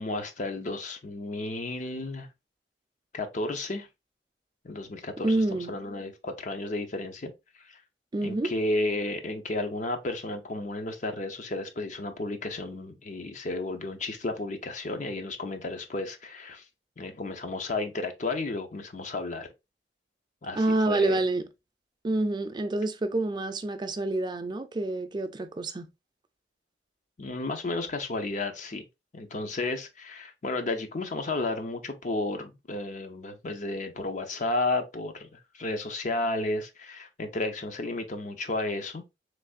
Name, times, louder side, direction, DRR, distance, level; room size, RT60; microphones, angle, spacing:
voice 1, 0.0-2.3 3.1-3.9 4.6-7.3 7.6-7.8 8.2-16.6 17.0-19.5 20.4-21.2 27.2-28.8 29.1-39.0, left 2 dB, 45° left, 0.6 m, -32 dB
voice 2, 5.2-5.8 8.1-8.5 20.6-21.5 22.0-25.9, right 2 dB, 25° right, 0.4 m, -27 dB
3.4 x 3.3 x 2.4 m
head